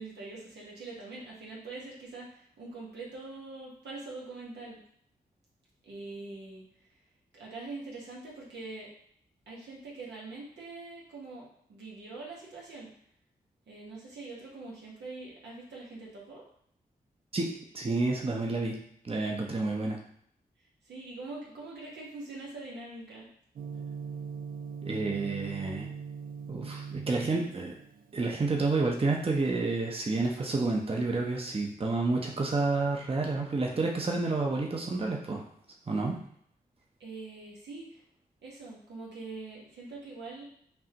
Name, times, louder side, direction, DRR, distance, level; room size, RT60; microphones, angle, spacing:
voice 1, 0.0-4.8 5.8-6.6 7.3-8.9 9.5-12.9 13.7-16.4 20.8-23.3 37.0-38.0 38.4-40.4, right 3 dB, 90° right, -4 dB, 1.3 m, -43 dB
voice 2, 17.7-18.8 19.0-20.0 24.8-25.9 26.5-27.7 28.1-35.4 35.9-36.2, right 3 dB, 35° right, 0 dB, 0.8 m, -29 dB
Gong, 23.6-31.6, right 6 dB, 55° right, 0.4 m, -42 dB
5.4 x 2.5 x 2.9 m, 0.67 s
cardioid pair, 50°, 17 cm